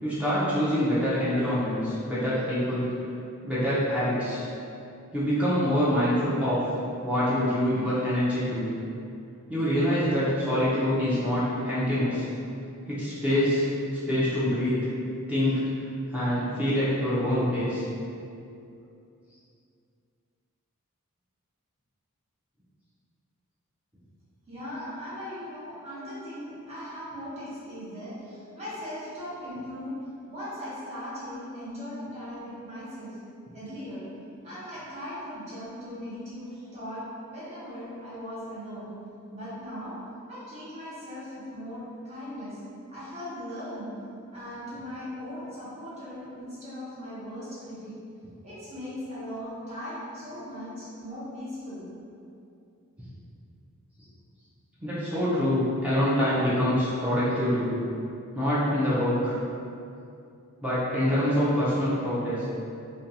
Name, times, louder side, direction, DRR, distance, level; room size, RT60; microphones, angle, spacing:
voice 1, 0.0-2.9 3.4-4.4 5.1-6.6 7.0-8.7 9.5-12.2 12.9-13.7 14.1-14.9 15.3-15.6 16.1-17.8 54.8-57.8 58.3-59.4 60.6-62.5, equal, 5° right, -11 dB, 0.5 m, -25 dB
voice 2, 24.5-30.0 30.3-33.2 33.5-34.1 34.4-38.9 39.3-39.9 40.3-42.6 42.9-43.9 44.3-48.0 48.4-51.9, equal, 30° right, -11 dB, 1.0 m, -38 dB
2.5 x 2.2 x 2.7 m, 2.6 s
head